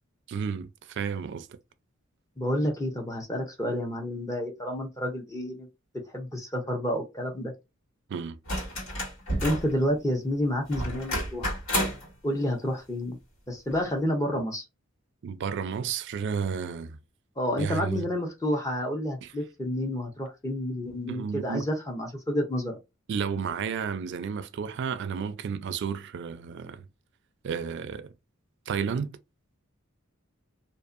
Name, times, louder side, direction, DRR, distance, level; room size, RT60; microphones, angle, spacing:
voice 1, 0.3-1.5 8.1-8.4 15.2-17.0 17.6-18.1 19.2-19.3 21.1-21.7 23.1-26.8 27.4-28.1 28.7-29.2, right 6 dB, 60° right, 0.4 m, -32 dB
voice 2, 2.4-5.7 6.1-7.5 9.4-11.6 12.2-13.2 13.5-14.6 17.4-22.8, left 1 dB, 15° left, 0.6 m, -29 dB
sound 1, 8.5-9.7 10.7-12.1 13.7-13.8, equal, 75° left, 1.7 m, -30 dB
2.6 x 2.4 x 2.4 m
head